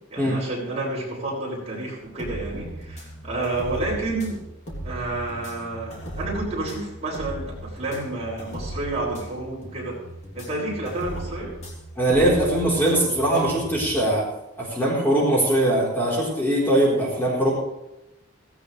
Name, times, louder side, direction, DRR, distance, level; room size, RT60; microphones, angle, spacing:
voice 1, 0.1-4.4 4.8-10.0 10.3-11.5, right 2 dB, 30° right, -5 dB, 6.3 m, -30 dB
sound 1, 2.0-14.1, equal, 35° left, 3.4 m, -37 dB
voice 2, 12.0-14.2 14.6-17.5, right 1 dB, 10° left, -5 dB, 4.3 m, -21 dB
17.5 x 17.0 x 3.4 m, 0.92 s
head